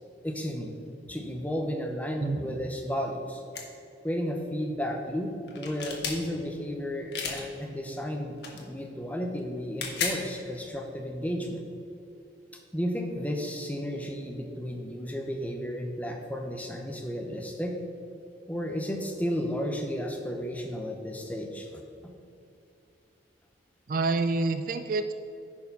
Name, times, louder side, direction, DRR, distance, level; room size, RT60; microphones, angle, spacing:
voice 1, 0.2-0.8 1.1-3.4 4.0-11.6 12.7-17.8 18.5-21.7 22.0-22.1, equal, 10° left, 2 dB, 0.8 m, -33 dB
voice 2, 2.2-2.6 23.9-25.1, right 3 dB, 50° right, 9 dB, 0.3 m, -28 dB
sound 1, 3.5-3.6 5.5-6.2 7.1-7.4 8.4-8.6 9.6-10.2, left 5 dB, 65° left, 1.3 m, -32 dB
10.5 x 4.7 x 5.4 m, 2.7 s
head